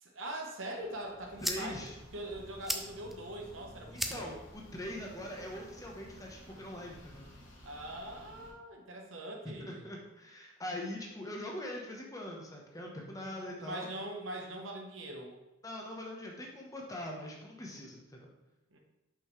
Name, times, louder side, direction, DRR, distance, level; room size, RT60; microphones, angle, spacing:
voice 1, 0.0-1.8 2.1-4.4 7.6-9.8 13.3-15.4 18.7-18.8, right 1 dB, 75° right, 1 dB, 1.0 m, -42 dB
sound 1, 0.8-6.8, equal, ahead, 0.3 m, -43 dB
sound 2, 1.2-8.5, equal, 65° left, 2.1 m, -53 dB
voice 2, 1.4-1.9 3.9-7.3 9.4-13.9 15.6-18.3, left 1 dB, 15° left, 0 dB, 0.9 m, -42 dB
5.6 x 5.3 x 3.2 m, 0.97 s
head